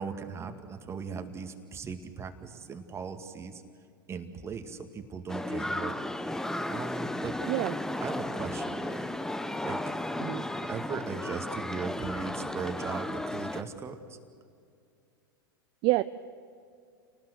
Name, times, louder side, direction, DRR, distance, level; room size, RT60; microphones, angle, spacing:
voice 1, 0.0-3.6 4.1-6.0 6.7-7.4 8.0-9.1 9.6-9.8 10.6-14.2, right 5 dB, 20° right, 7 dB, 2.1 m, -38 dB
sound 1, 5.3-13.6, left 1 dB, 5° left, 0.9 m, -34 dB
voice 2, 7.5-7.7 10.2-10.4 15.8-16.0, right 21 dB, 45° right, 13 dB, 0.6 m, -26 dB
30.0 x 19.5 x 6.4 m, 2.4 s
figure-of-eight pair, 90°, 12 cm